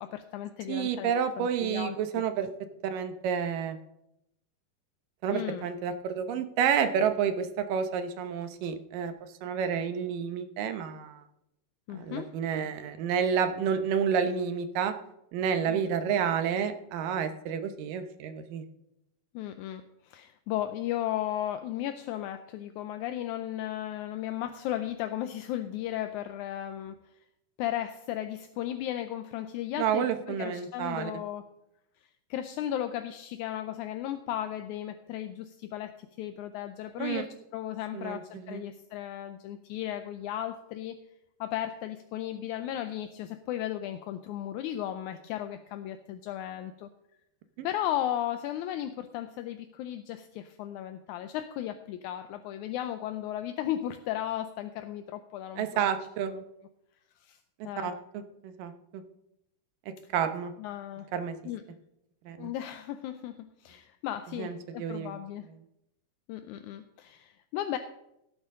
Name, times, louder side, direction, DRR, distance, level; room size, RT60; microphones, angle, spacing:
voice 1, 0.0-2.2 5.3-5.7 11.9-12.3 15.7-16.2 19.3-27.0 27.6-31.5 32.3-41.0 41.4-46.9 47.6-55.9 56.3-56.4 57.2-57.4 57.6-57.9 60.6-61.1 61.5-61.6 62.4-65.5 66.3-67.8, left 12 dB, 80° left, 8 dB, 1.9 m, -35 dB
voice 2, 0.7-2.5 2.8-3.8 5.2-9.1 9.4-11.2 11.9-14.9 15.3-18.6 29.8-31.2 37.0-37.2 37.9-38.6 47.6-47.7 55.6-56.3 57.6-59.0 60.1-60.5 61.1-61.4 62.3-62.5 64.4-65.2, right 7 dB, 85° right, 8 dB, 2.6 m, -30 dB
17.0 x 8.9 x 3.7 m, 0.82 s
omnidirectional pair, 3.8 m